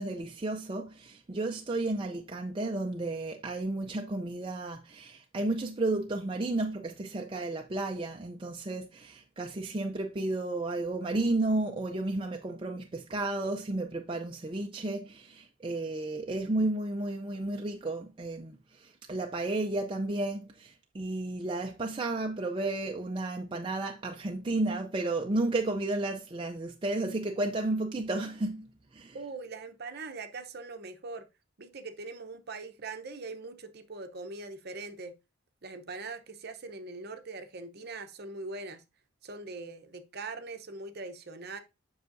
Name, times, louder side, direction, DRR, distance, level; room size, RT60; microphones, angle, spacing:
voice 1, 0.0-29.2, right 2 dB, 25° right, 0.4 m, -32 dB
voice 2, 29.1-31.3 31.6-35.1 35.6-38.8 39.2-41.6, right 3 dB, 45° right, 0.8 m, -41 dB
7.7 x 5.6 x 2.6 m
head